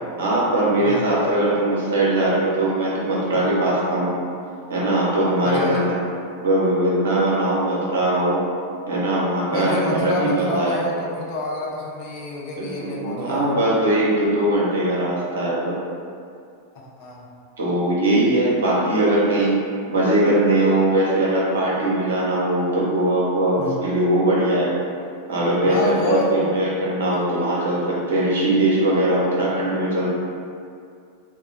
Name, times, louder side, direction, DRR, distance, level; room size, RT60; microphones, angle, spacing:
voice 1, 0.2-4.1 4.7-6.0 6.4-8.4 8.9-10.8 12.6-15.7 17.6-19.6 19.9-24.7 25.3-30.1, right 1 dB, 65° right, -5 dB, 0.7 m, -20 dB
voice 2, 0.8-1.2 5.4-5.8 9.5-13.7 16.7-17.3 23.6-23.8 25.7-26.7 27.1-27.2, left 2 dB, 45° left, -4 dB, 0.5 m, -28 dB
2.2 x 2.1 x 3.8 m, 2.3 s
figure-of-eight pair, 90°, 0 cm